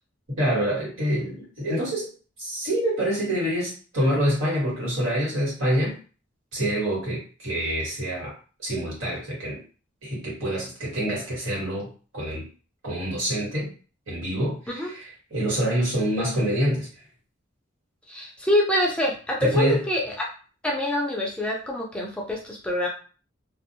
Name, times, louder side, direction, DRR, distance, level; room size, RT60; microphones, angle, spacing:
voice 1, 0.4-2.1 2.4-6.0 6.5-8.3 8.6-9.6 10.0-11.9 12.1-12.5 12.8-13.7 14.1-16.9 19.4-19.8, right 1 dB, 85° right, -5 dB, 1.5 m, -26 dB
voice 2, 18.1-20.0 20.6-22.9, left 1 dB, 5° left, -2 dB, 0.4 m, -25 dB
2.5 x 2.1 x 2.7 m, 0.38 s
head